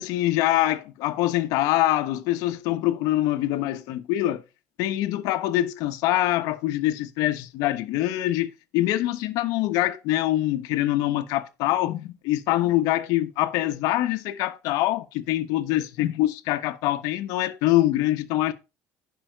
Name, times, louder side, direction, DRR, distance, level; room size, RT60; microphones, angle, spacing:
voice 1, 0.0-4.4 4.8-18.5, left 15 dB, 75° left, 1.1 m, -24 dB
10.5 x 5.7 x 4.5 m
cardioid pair, 125°, 6 cm